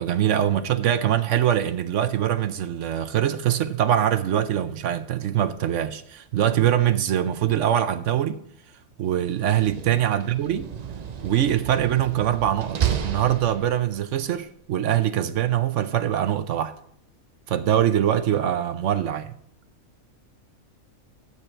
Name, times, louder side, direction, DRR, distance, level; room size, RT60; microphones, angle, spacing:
voice 1, 0.0-8.4 9.0-10.7 11.2-16.7 17.5-19.3, right 10 dB, 65° right, 0.9 m, -23 dB
Slam, 9.3-14.1, right 9 dB, 85° right, 0.3 m, -31 dB
10.0 x 8.3 x 4.4 m
omnidirectional pair, 1.5 m